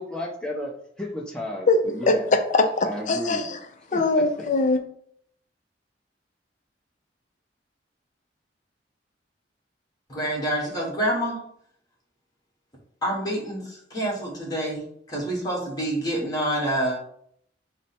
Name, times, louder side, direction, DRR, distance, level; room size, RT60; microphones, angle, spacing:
voice 1, 0.0-2.2 2.8-3.4 3.9-4.2, left 1 dB, 5° left, -1 dB, 0.7 m, -33 dB
voice 2, 2.1-3.6 3.9-4.8, left 3 dB, 45° left, 7 dB, 0.5 m, -21 dB
voice 3, 10.1-11.4 13.0-14.8 15.1-17.0, right 1 dB, 20° left, -3 dB, 1.3 m, -27 dB
4.8 x 2.1 x 4.2 m, 0.67 s
head